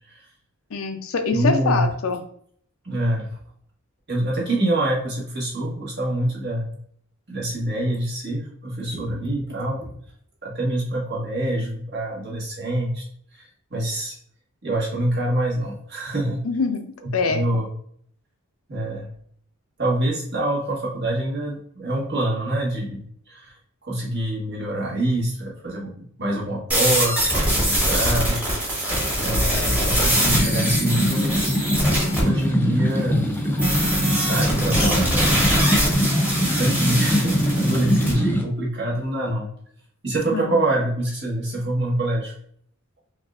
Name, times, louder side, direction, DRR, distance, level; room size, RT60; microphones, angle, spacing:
voice 1, 0.7-2.2 16.4-17.4 40.3-40.6, left 4 dB, 70° left, 7 dB, 0.5 m, -24 dB
voice 2, 1.3-1.9 2.8-3.4 4.1-6.7 7.3-9.9 10.4-13.0 13.3-14.2 14.6-16.4 17.2-17.7 18.7-19.1 19.8-23.6 23.8-28.8 29.2-33.3 34.1-35.4 36.5-39.5 40.0-42.3, right 1 dB, 55° right, -4 dB, 1.5 m, -25 dB
sound 1, 26.7-32.2 33.6-38.1, equal, 10° right, 1.3 m, -23 dB
sound 2, 27.7-33.7 34.0-37.9, right 3 dB, 40° right, 1.2 m, -38 dB
sound 3, 30.1-38.4, equal, 10° left, 0.5 m, -23 dB
5.3 x 2.5 x 2.4 m, 0.63 s
head